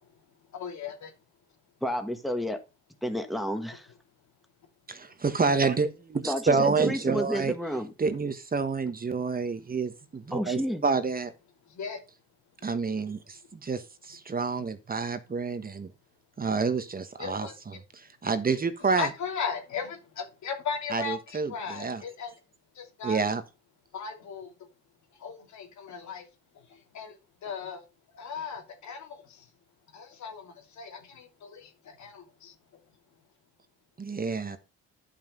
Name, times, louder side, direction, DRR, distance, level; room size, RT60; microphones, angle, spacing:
voice 1, 0.5-1.1 11.6-12.0 17.2-17.6 18.8-22.4 22.7-23.2 23.9-24.5 25.1-26.3 26.5-27.8 28.1-29.5 29.9-32.6, left 6 dB, 70° left, 2.9 m, -37 dB
voice 2, 1.8-2.6 3.0-3.9 6.3-7.9 10.3-10.8, equal, ahead, 1.5 m, -31 dB
voice 3, 4.9-7.5 8.0-11.3 12.6-15.9 16.4-17.5 18.0-19.1 20.9-22.0 23.0-23.4 34.0-34.6, right 4 dB, 30° right, 1.3 m, -28 dB
10.5 x 5.7 x 5.3 m
cardioid pair, 90°, 30 cm